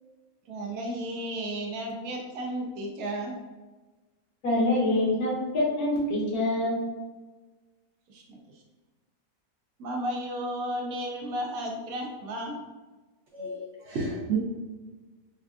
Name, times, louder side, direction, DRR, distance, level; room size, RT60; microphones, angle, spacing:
voice 1, 0.5-3.4 8.1-8.6 9.8-12.6, right 1 dB, 80° right, 1 dB, 1.1 m, -33 dB
voice 2, 4.4-6.8, left 1 dB, 75° left, -5 dB, 1.6 m, -25 dB
voice 3, 13.3-14.4, right 4 dB, 60° right, -2 dB, 0.8 m, -31 dB
4.4 x 2.4 x 2.4 m, 1.2 s
omnidirectional pair, 1.6 m